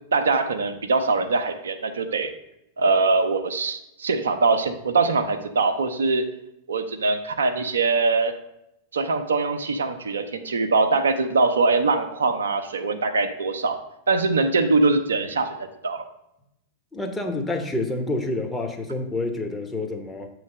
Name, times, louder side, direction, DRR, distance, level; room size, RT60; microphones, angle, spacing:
voice 1, 0.1-2.3 2.8-6.2 6.7-8.3 8.9-13.8 14.1-15.5 15.8-16.1, right 3 dB, 70° right, 8 dB, 0.5 m, -22 dB
voice 2, 16.9-20.3, left 2 dB, 10° left, 3 dB, 0.9 m, -28 dB
7.1 x 3.2 x 6.1 m, 0.84 s
figure-of-eight pair, 90°, 0 cm